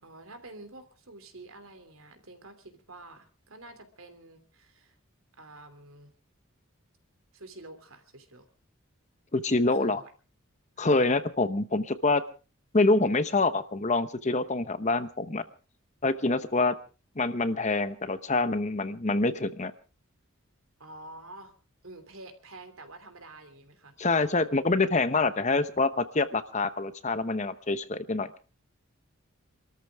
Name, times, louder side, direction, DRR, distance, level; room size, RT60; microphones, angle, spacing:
voice 1, 0.0-5.0 5.4-6.1 7.3-8.5 9.8-10.0 10.8-11.0 20.8-21.5 21.8-23.9, right 2 dB, 80° right, 8 dB, 3.0 m, -48 dB
voice 2, 9.3-10.0 10.8-12.2 12.7-15.4 16.0-16.7 17.2-19.7 24.0-28.3, left 3 dB, 35° left, 12 dB, 0.9 m, -26 dB
27.0 x 13.5 x 3.6 m, 0.34 s
head